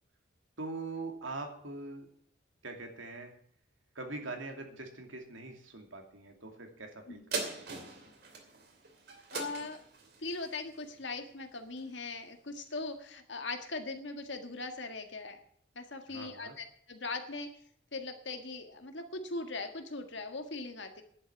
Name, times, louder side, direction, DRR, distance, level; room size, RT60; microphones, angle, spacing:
voice 1, 0.6-2.1 2.6-3.3 3.9-7.8 16.1-16.6, right 3 dB, 85° right, 4 dB, 2.6 m, -43 dB
sound 1, 7.3-12.1 12.6-12.7, right 3 dB, 55° right, 2.8 m, -41 dB
voice 2, 9.3-9.8 10.2-15.4 15.7-17.5 17.9-21.0, left 3 dB, 65° left, 6 dB, 1.8 m, -40 dB
10.5 x 8.1 x 8.6 m, 0.62 s
head